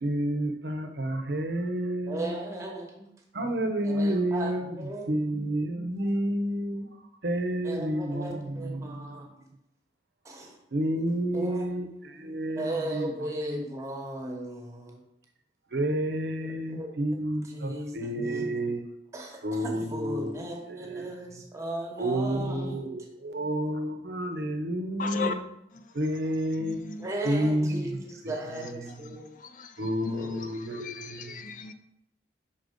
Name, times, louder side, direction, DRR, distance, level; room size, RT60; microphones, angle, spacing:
voice 1, 0.0-2.3 3.3-4.8 5.1-6.9 7.2-9.2 10.7-13.1 15.7-18.9 19.4-20.3 20.7-21.4 22.0-25.4 25.9-26.8 27.2-28.7 29.8-31.4, right 1 dB, 65° right, 0.7 m, -30 dB
voice 2, 2.1-3.1 3.8-5.1 7.6-9.3 10.2-10.6 11.3-11.7 12.5-15.0 16.4-16.9 17.4-18.4 19.1-22.8 27.0-29.3 30.1-30.5, right 1 dB, 15° right, 1.0 m, -36 dB
voice 3, 25.0-25.3 26.6-27.1 29.1-29.2 29.6-30.5 30.8-31.7, left 4 dB, 45° left, 0.4 m, -36 dB
5.6 x 4.0 x 4.9 m
head